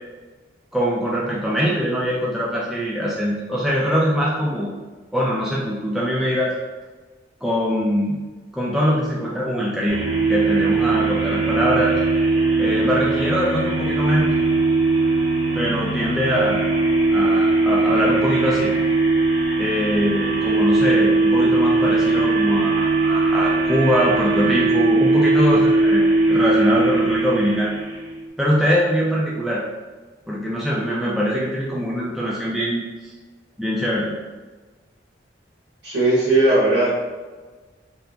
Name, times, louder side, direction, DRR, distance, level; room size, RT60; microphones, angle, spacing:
voice 1, 0.7-4.7 5.1-6.5 7.4-8.2 8.5-10.0 10.3-11.9 12.6-14.2 15.5-16.6 17.1-18.7 19.6-27.7 28.4-29.6 30.3-33.1 33.6-34.1, equal, ahead, -6 dB, 0.3 m, -22 dB
sound 1, 9.9-28.2, right 3 dB, 85° right, 1.2 m, -20 dB
voice 2, 35.8-36.9, right 2 dB, 65° right, -9 dB, 1.5 m, -17 dB
3.4 x 2.7 x 2.4 m, 1.3 s
head